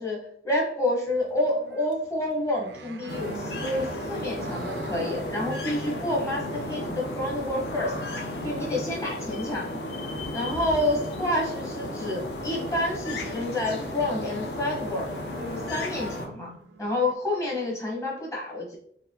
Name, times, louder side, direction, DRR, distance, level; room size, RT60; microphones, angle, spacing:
voice 1, 0.0-8.0 8.4-9.8 10.3-15.1 15.4-16.5 16.8-18.8, left 1 dB, 15° left, -3 dB, 0.9 m, -29 dB
sound 1, 1.1-17.1, right 4 dB, 90° right, 0.4 m, -47 dB
sound 2, 3.1-16.3, left 1 dB, 75° left, 0.6 m, -34 dB
4.0 x 3.0 x 2.7 m, 0.65 s
head